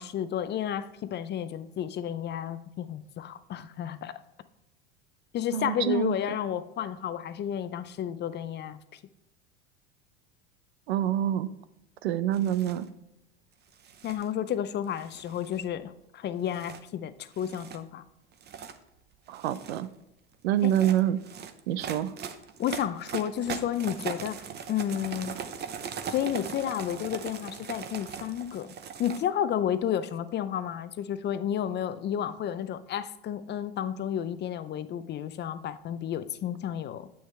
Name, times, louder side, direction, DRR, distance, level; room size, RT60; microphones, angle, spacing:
voice 1, 0.0-4.1 5.3-9.0 14.0-18.0 20.6-20.7 22.6-24.4 24.7-25.3 26.1-28.7 29.0-37.1, left 10 dB, 35° left, 13 dB, 0.5 m, -31 dB
voice 2, 5.5-6.2 10.9-11.5 12.0-12.9 19.3-19.9 20.4-21.2 21.7-22.1, right 11 dB, 90° right, 15 dB, 0.6 m, -26 dB
sound 1, 12.3-12.8 13.7-14.3 15.0-15.7 16.5-16.8 17.3-17.8 18.3-18.8 19.3-19.8 20.5-29.2, right 7 dB, 30° right, 0.8 m, -40 dB
8.0 x 6.5 x 3.3 m, 0.94 s
supercardioid pair, 100°, 31 cm